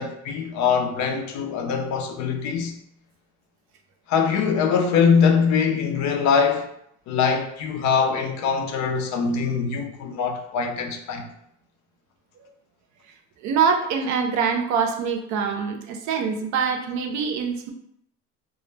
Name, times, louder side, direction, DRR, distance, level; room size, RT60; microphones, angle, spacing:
voice 1, 0.0-2.8 4.1-6.7 7.1-11.3, left 6 dB, 65° left, 0.5 m, -22 dB
voice 2, 13.4-17.7, right 6 dB, 65° right, 0.5 m, -24 dB
2.2 x 2.0 x 3.2 m
cardioid pair, 100°, 31 cm